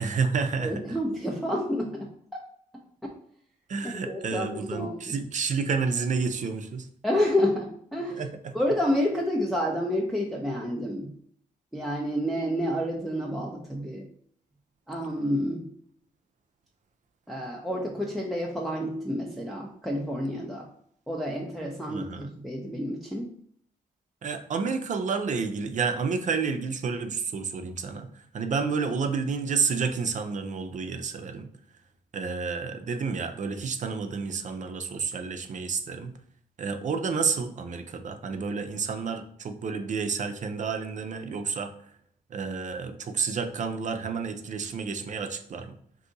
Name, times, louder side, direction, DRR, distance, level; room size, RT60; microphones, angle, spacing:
voice 1, 0.0-0.8 3.7-6.9 8.1-8.3 21.9-22.3 24.2-31.5 32.1-36.1 36.6-41.7 42.3-45.7, right 5 dB, 45° right, 7 dB, 0.5 m, -30 dB
voice 2, 0.6-2.4 4.1-5.2 7.0-8.2 8.5-11.1 11.7-14.0 14.9-15.7 17.3-20.7 21.1-23.3, equal, ahead, -2 dB, 0.6 m, -29 dB
2.7 x 2.6 x 3.8 m, 0.62 s
supercardioid pair, 60°, 17 cm